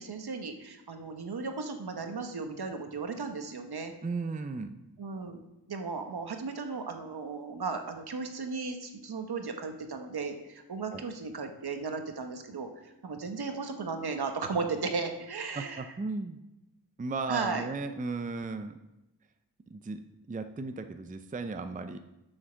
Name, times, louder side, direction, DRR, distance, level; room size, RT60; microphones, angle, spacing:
voice 1, 0.0-3.9 5.0-5.4 5.7-15.9 17.3-17.7, right 4 dB, 65° right, 5 dB, 1.2 m, -35 dB
voice 2, 4.0-4.8 10.9-11.0 15.6-16.4 17.0-18.8 19.7-20.0 20.3-22.0, right 3 dB, 20° right, 8 dB, 0.5 m, -35 dB
7.6 x 6.4 x 6.3 m, 0.95 s
wide cardioid pair, 85°, 42 cm